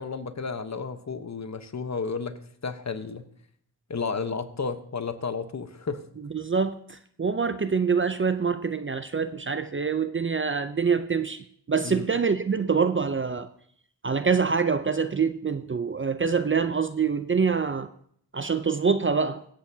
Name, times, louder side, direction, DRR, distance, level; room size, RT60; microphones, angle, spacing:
voice 1, 0.0-3.3 3.9-6.0 11.8-12.1, left 5 dB, 40° left, 1.1 m, -32 dB
voice 2, 6.3-13.5 14.0-17.9 18.3-19.4, right 5 dB, 30° right, 0.5 m, -25 dB
24.0 x 8.2 x 2.8 m
cardioid pair, 75°, 41 cm